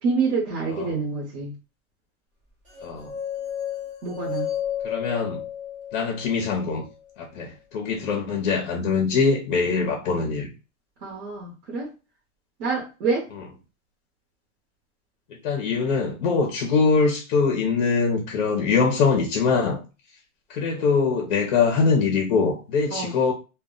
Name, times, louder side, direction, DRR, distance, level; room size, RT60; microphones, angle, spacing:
voice 1, 0.0-1.5 4.0-4.5 11.0-11.9 12.6-13.3 22.9-23.2, right 4 dB, 50° right, 0.9 m, -27 dB
sound 1, 2.7-6.8, left 9 dB, 20° right, 0.4 m, -32 dB
voice 2, 2.8-3.1 4.8-5.4 5.9-6.8 7.2-10.5 15.4-19.8 20.5-23.3, left 5 dB, 40° left, 0.5 m, -23 dB
2.2 x 2.0 x 3.6 m
supercardioid pair, 175°, 41 cm